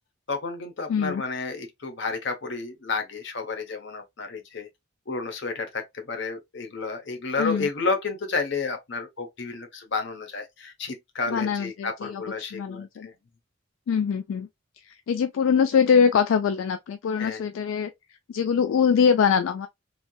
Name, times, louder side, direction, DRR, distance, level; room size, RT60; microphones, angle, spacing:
voice 1, 0.3-4.7 5.1-13.1 17.2-17.4, left 4 dB, 60° left, 0.8 m, -31 dB
voice 2, 0.9-1.2 7.4-7.7 11.3-13.1 13.9-14.5 14.8-17.9 18.3-19.7, left 6 dB, 75° left, 0.3 m, -23 dB
3.2 x 2.6 x 2.3 m
head